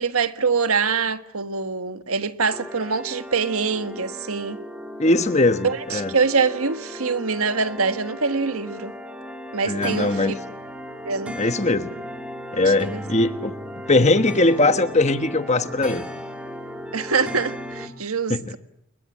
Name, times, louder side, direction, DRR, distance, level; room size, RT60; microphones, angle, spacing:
voice 1, 0.0-4.6 5.6-8.9 9.5-10.4 11.0-11.4 12.8-13.0 16.9-18.6, right 5 dB, 75° right, 1.5 m, -24 dB
sound 1, 2.5-17.9, equal, 5° right, 2.6 m, -36 dB
voice 2, 5.0-6.1 9.6-10.4 11.3-11.9 12.5-13.5 13.9-16.1 18.3-18.5, left 2 dB, 30° left, 1.3 m, -20 dB
29.0 x 21.5 x 7.3 m
head